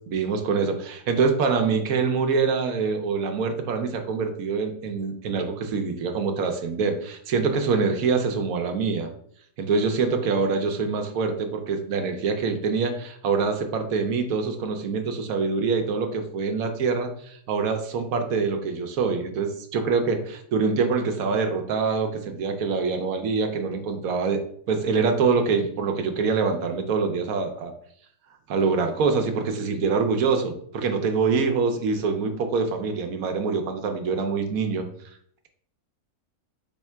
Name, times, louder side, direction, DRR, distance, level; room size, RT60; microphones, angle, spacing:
voice 1, 0.1-9.1 9.6-24.4 24.7-27.7 28.5-34.9, right 5 dB, 70° right, 5 dB, 1.1 m, -25 dB
3.6 x 3.3 x 4.5 m, 0.65 s
omnidirectional pair, 1.6 m